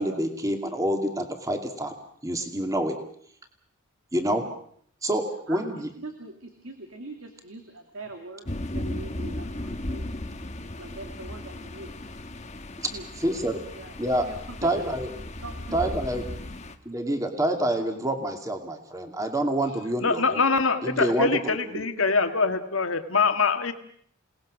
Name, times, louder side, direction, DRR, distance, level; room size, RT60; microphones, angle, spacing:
voice 1, 0.0-1.9 2.2-2.9 4.1-4.4 5.0-5.9 12.8-12.9 13.2-13.6 14.0-14.3 14.6-15.1 15.7-16.2 16.9-20.4 20.8-21.9, right 1 dB, 15° right, 5 dB, 2.4 m, -27 dB
voice 2, 6.0-10.2 10.8-12.0 12.9-13.1 13.4-14.9 15.4-16.2 16.7-16.8, right 2 dB, 65° right, 4 dB, 2.5 m, -43 dB
sound 1, 8.4-16.7, left 1 dB, 30° left, 1.3 m, -36 dB
voice 3, 20.0-23.7, left 4 dB, 65° left, 7 dB, 1.9 m, -24 dB
28.5 x 19.0 x 6.4 m, 0.64 s
head